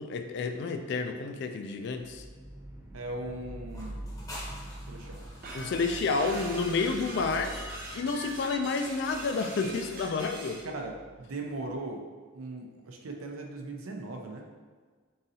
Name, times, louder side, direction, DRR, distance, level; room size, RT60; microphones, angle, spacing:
voice 1, 0.0-2.2 5.5-7.6 7.9-10.6, left 4 dB, 55° left, 7 dB, 0.3 m, -30 dB
sound 1, 2.0-11.8, right 1 dB, 10° right, 0.4 m, -46 dB
voice 2, 2.9-4.0 4.9-5.2 10.6-12.0 12.3-14.4, right 2 dB, 85° right, 2 dB, 0.6 m, -38 dB
sound 2, 3.7-8.3, left 1 dB, 15° left, 0.8 m, -48 dB
sound 3, 5.4-10.7, right 2 dB, 45° right, 0.7 m, -42 dB
4.0 x 3.8 x 2.7 m, 1.5 s
head